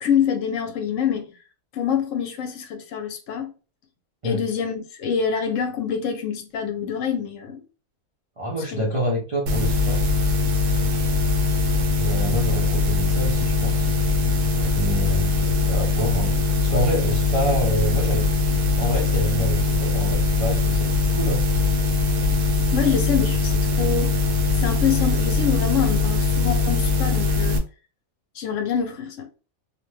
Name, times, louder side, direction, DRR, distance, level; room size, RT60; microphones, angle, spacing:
voice 1, 0.0-1.3 1.7-3.5 4.2-7.6 8.7-8.9 22.7-24.1 24.6-27.6 28.3-29.3, left 7 dB, 70° left, 0.9 m, -25 dB
voice 2, 8.4-10.0 12.0-13.9 14.7-18.3 18.6-21.4, right 1 dB, 40° right, 0.5 m, -27 dB
sound 1, 9.5-27.6, left 4 dB, 90° right, 1.2 m, -21 dB
2.6 x 2.1 x 3.1 m
omnidirectional pair, 1.4 m